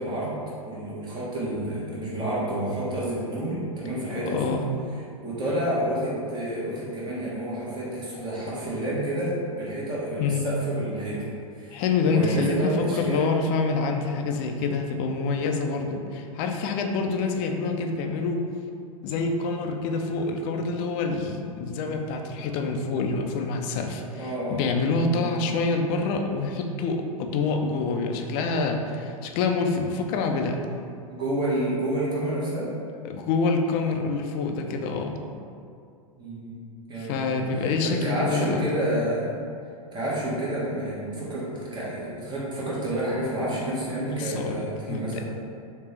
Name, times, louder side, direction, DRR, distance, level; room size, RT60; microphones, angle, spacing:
voice 1, 0.0-4.6 5.2-11.3 11.5-13.3 24.2-24.6 25.1-25.3 31.1-32.7 36.2-36.6 36.9-39.3 39.9-45.2, right 1 dB, 25° right, -7 dB, 1.1 m, -29 dB
voice 2, 4.3-4.6 10.2-10.4 11.7-18.4 19.0-30.6 33.0-35.1 37.0-38.6 44.1-44.6 44.9-45.2, left 4 dB, 45° left, 4 dB, 0.4 m, -26 dB
3.3 x 2.8 x 3.3 m, 2.4 s
hypercardioid pair, 115°, 18 cm